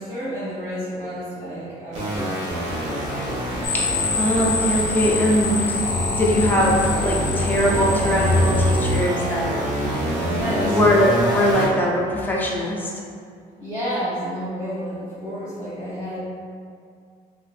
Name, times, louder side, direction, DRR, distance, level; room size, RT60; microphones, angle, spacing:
voice 1, 0.0-2.8 10.3-10.8 13.6-16.2, equal, 25° right, -16 dB, 1.3 m, -31 dB
sound 1, 1.9-11.7, equal, 45° right, 1.2 m, -26 dB
sound 2, 3.6-9.0, left 2 dB, 75° left, 0.5 m, -24 dB
voice 2, 4.2-5.8 6.1-9.6 9.9-10.0 10.6-12.9, equal, 10° left, -4 dB, 0.5 m, -21 dB
3.0 x 2.6 x 2.4 m, 2.2 s
cardioid pair, 110°, 17 cm